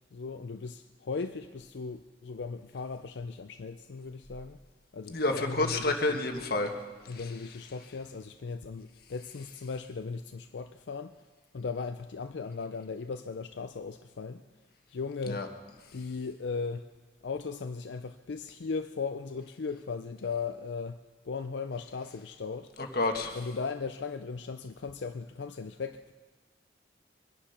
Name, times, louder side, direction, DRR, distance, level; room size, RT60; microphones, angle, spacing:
voice 1, 0.1-4.6 4.9-6.2 7.1-11.2 11.5-14.4 14.9-15.5 15.9-16.9 17.2-22.7 23.3-26.1, left 4 dB, 90° left, 8 dB, 0.5 m, -37 dB
voice 2, 5.1-6.8 7.1-7.2 15.3-15.5 22.9-23.4, left 2 dB, 60° left, 4 dB, 1.5 m, -29 dB
23.5 x 9.9 x 5.8 m, 1.4 s
head